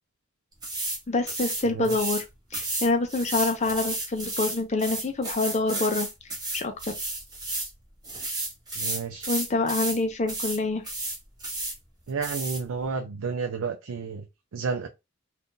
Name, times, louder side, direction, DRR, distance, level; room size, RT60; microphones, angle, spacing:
sound 1, 0.6-1.0 1.3-2.2 2.5-7.7 8.0-10.0 10.3-10.6 10.8-11.8 12.2-12.6, right 2 dB, 20° right, 1.0 m, -32 dB
voice 1, 1.1-2.2 2.5-6.9 9.3-10.8, left 3 dB, 30° left, 0.5 m, -26 dB
voice 2, 1.7-2.1 8.8-9.3 12.1-14.2 14.5-14.9, right 5 dB, 70° right, 0.4 m, -31 dB
2.7 x 2.4 x 3.6 m
head